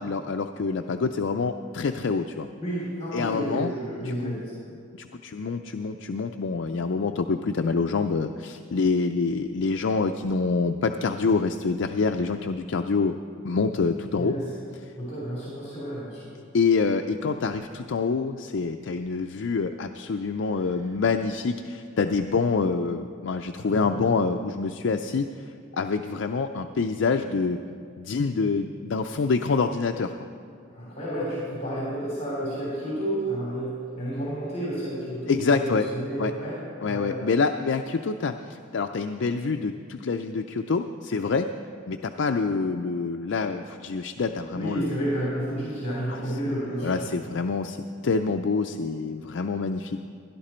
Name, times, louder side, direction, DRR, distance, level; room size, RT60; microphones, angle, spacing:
voice 1, 0.0-2.5 3.1-3.7 4.2-4.4 4.9-13.1 13.4-14.4 16.5-25.3 25.7-27.6 28.0-30.1 35.3-35.8 36.2-36.3 36.8-41.5 41.9-44.9 46.1-46.2 46.8-47.8 48.0-50.0, left 4 dB, 70° left, 5 dB, 0.4 m, -26 dB
voice 2, 2.6-4.8 14.2-14.5 15.0-16.3 23.5-24.1 30.7-37.3 44.5-47.2, right 1 dB, 35° left, -6 dB, 3.4 m, -31 dB
17.0 x 11.5 x 4.4 m, 2.4 s
head